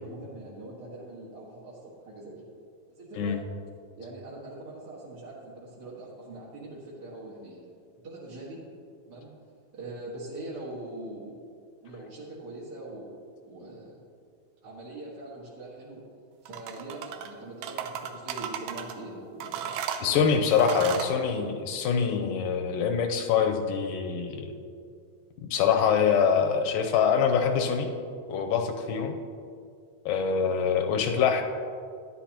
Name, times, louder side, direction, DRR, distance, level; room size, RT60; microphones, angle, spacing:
voice 1, 0.0-2.4 2.9-3.4 4.0-7.6 8.0-8.6 9.0-9.3 9.7-11.5 11.8-13.1 13.5-13.9 14.6-16.0 16.4-19.7 20.0-20.9, right 2 dB, 40° right, -7 dB, 1.7 m, -42 dB
sound 1, 16.5-17.3 17.6-19.0 19.4-21.1, right 9 dB, 80° right, 1.7 m, -35 dB
voice 2, 20.0-24.5 25.5-27.9 28.3-29.1 30.1-31.4, left 6 dB, 80° left, 4 dB, 2.3 m, -24 dB
13.0 x 10.5 x 2.9 m, 2.3 s
omnidirectional pair, 4.0 m